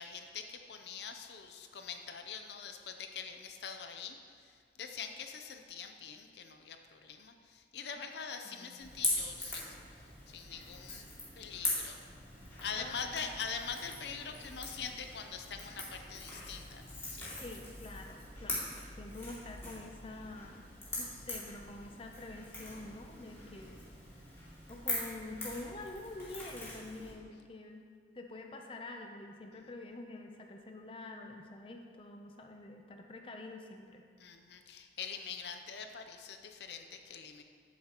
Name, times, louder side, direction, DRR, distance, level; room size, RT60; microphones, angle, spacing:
voice 1, 0.0-11.1 11.4-12.0 12.6-17.4 34.2-37.4, left 6 dB, 70° left, 6 dB, 0.6 m, -44 dB
voice 2, 8.5-8.9 12.7-13.3 17.4-20.7 21.0-23.8 24.2-27.8 28.1-34.0, left 2 dB, 30° left, 3 dB, 0.6 m, -47 dB
Crackle / Crack, 8.8-27.1, left 2 dB, 15° left, 2.3 m, -42 dB
13.5 x 7.3 x 3.0 m, 2.1 s
head